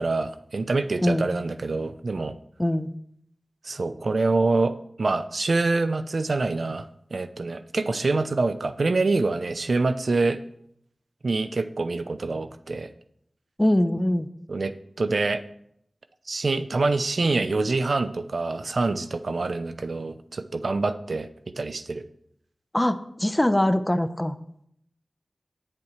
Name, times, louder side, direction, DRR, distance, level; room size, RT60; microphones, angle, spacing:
voice 1, 0.0-2.3 3.6-4.7 5.0-10.4 11.2-12.9 14.5-14.7 15.0-15.4 16.3-21.3 21.6-22.0, right 3 dB, 75° right, 10 dB, 0.6 m, -25 dB
voice 2, 2.6-2.9 13.6-14.3 22.7-24.4, left 1 dB, 20° left, 11 dB, 0.8 m, -22 dB
18.0 x 7.5 x 3.2 m, 0.71 s
wide cardioid pair, 50°, 0 cm